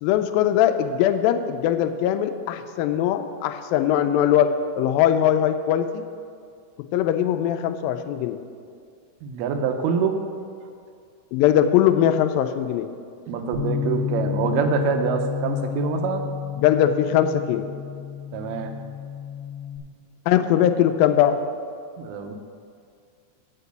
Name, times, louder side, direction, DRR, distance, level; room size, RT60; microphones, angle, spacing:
voice 1, 0.0-6.0 6.9-8.4 11.3-12.9 16.6-17.7 20.3-21.4, left 10 dB, 80° left, 8 dB, 2.2 m, -21 dB
voice 2, 9.2-10.2 13.3-16.2 18.3-18.7 22.0-22.4, right 6 dB, 85° right, 6 dB, 2.7 m, -25 dB
Bass guitar, 13.5-19.8, left 10 dB, 50° left, 1.6 m, -30 dB
8.4 x 5.9 x 7.9 m, 2.2 s
omnidirectional pair, 4.4 m